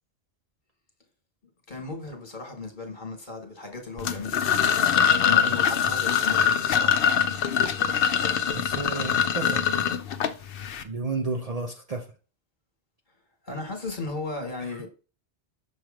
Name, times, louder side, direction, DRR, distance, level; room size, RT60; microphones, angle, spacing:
voice 1, 1.7-7.2 13.4-14.9, left 3 dB, 45° left, 1.7 m, -36 dB
sound 1, 4.0-10.8, left 8 dB, 60° left, 0.7 m, -23 dB
voice 2, 8.5-9.7 10.8-12.1 14.6-14.9, right 4 dB, 40° right, 0.6 m, -32 dB
6.3 x 3.1 x 4.9 m
omnidirectional pair, 1.1 m